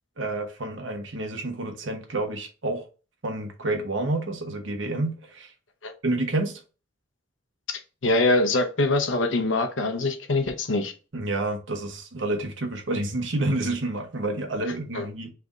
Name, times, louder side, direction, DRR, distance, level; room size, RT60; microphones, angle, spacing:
voice 1, 0.2-2.9 3.2-5.5 6.0-6.6 11.1-15.3, right 2 dB, 75° right, 1.1 m, -29 dB
voice 2, 7.7-10.9 14.9-15.1, left 2 dB, 80° left, 0.9 m, -24 dB
3.6 x 3.4 x 3.8 m
head